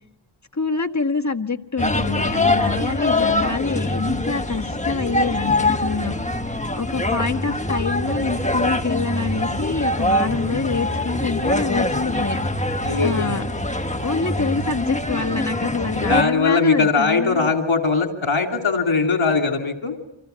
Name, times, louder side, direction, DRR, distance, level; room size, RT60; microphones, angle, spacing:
voice 1, 0.5-6.2 6.7-12.4 13.0-13.5 14.0-17.5, left 4 dB, 35° left, 7 dB, 1.5 m, -26 dB
sound 1, 1.8-16.2, left 1 dB, 15° left, 1.4 m, -23 dB
voice 2, 12.8-13.4 16.1-19.9, left 4 dB, 70° left, 4 dB, 2.9 m, -20 dB
30.0 x 26.0 x 7.0 m, 0.78 s
wide cardioid pair, 55°, 48 cm